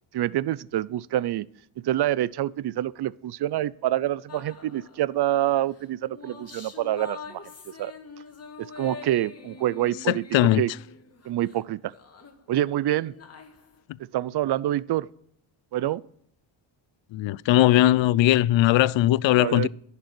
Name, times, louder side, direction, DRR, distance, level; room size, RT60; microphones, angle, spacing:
voice 1, 0.1-1.5 1.8-7.4 7.8-7.9 8.6-10.2 10.6-10.7 11.3-11.9 12.5-13.1 14.1-15.1 15.7-16.0 19.4-19.7, right 13 dB, 55° right, 0.6 m, -26 dB
macabre female vocals, 4.3-5.1 5.8-11.6 11.9-13.8, left 4 dB, 30° left, 1.9 m, -44 dB
voice 2, 10.1-10.6 17.1-19.7, left 14 dB, 65° left, 0.6 m, -19 dB
11.0 x 6.8 x 9.3 m
cardioid pair, 95°, 49 cm